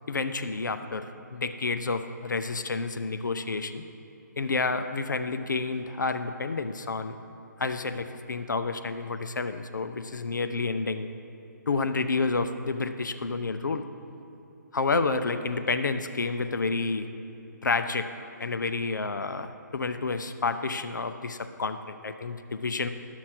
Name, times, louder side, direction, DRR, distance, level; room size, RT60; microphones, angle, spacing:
voice 1, 0.1-3.8 4.4-7.1 7.6-11.1 11.7-13.9 14.7-17.1 17.6-18.1 18.4-22.9, left 4 dB, 75° left, 9 dB, 0.6 m, -29 dB
12.5 x 6.2 x 5.9 m, 2.9 s
figure-of-eight pair, 150°, 10 cm